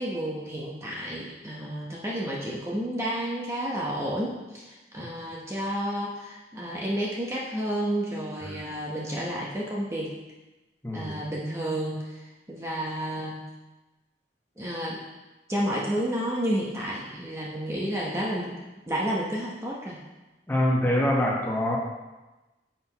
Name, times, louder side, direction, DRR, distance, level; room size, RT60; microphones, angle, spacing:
voice 1, 0.0-10.1 10.9-13.4 14.6-15.0 15.5-18.5 18.9-20.0, equal, 15° right, -4 dB, 1.0 m, -31 dB
voice 2, 20.5-21.8, left 1 dB, 10° left, -3 dB, 1.3 m, -24 dB
10.0 x 6.1 x 3.0 m, 1.1 s
head